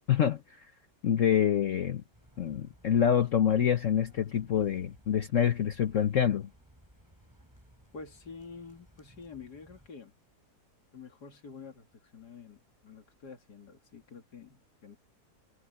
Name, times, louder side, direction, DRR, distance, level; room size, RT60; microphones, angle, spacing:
voice 1, 0.1-0.7 1.0-2.0 2.4-6.5, left 9 dB, 55° left, 1.2 m, -26 dB
sound 1, 2.1-9.9, equal, 10° right, 6.6 m, -60 dB
voice 2, 7.9-10.1 10.9-11.9 12.1-15.0, left 5 dB, 85° left, 3.0 m, -48 dB
omnidirectional pair, 1.7 m